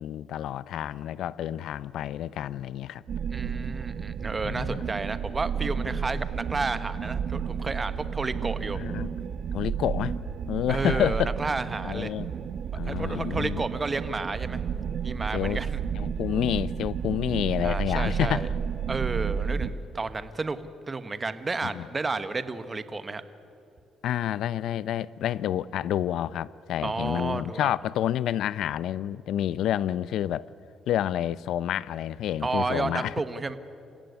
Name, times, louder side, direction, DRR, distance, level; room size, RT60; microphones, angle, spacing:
voice 1, 0.0-3.0 4.4-4.8 8.7-9.1 9.5-10.1 10.5-11.3 11.8-12.3 12.7-13.6 15.3-15.6 16.0-18.5 21.6-21.9 24.0-30.5 30.9-33.1, left 11 dB, 80° left, 0.6 m, -29 dB
sound 1, 3.1-19.7, right 7 dB, 65° right, 1.0 m, -31 dB
voice 2, 3.3-8.8 10.7-12.1 12.8-14.6 15.0-15.8 17.6-18.5 18.9-20.6 20.9-23.2 26.8-27.7 32.4-33.6, right 3 dB, 25° right, 1.4 m, -31 dB
27.5 x 16.5 x 9.8 m
cardioid pair, 90°, 0 cm